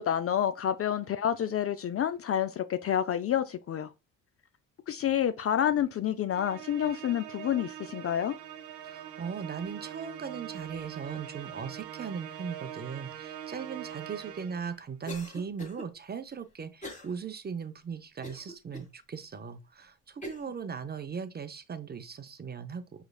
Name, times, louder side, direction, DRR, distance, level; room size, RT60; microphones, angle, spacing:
voice 1, 0.0-3.9 4.9-8.4, left 10 dB, 35° left, 0.4 m, -29 dB
Musical instrument, 6.3-14.8, right 10 dB, 90° right, 0.8 m, -43 dB
voice 2, 8.8-22.8, right 6 dB, 25° right, 0.5 m, -38 dB
Cough, 15.1-15.9 16.8-17.1 17.6-17.7 18.2-18.9 19.5-19.6 20.2-20.5, left 1 dB, 20° left, 1.5 m, -42 dB
4.8 x 3.1 x 2.3 m
supercardioid pair, 65°, 40 cm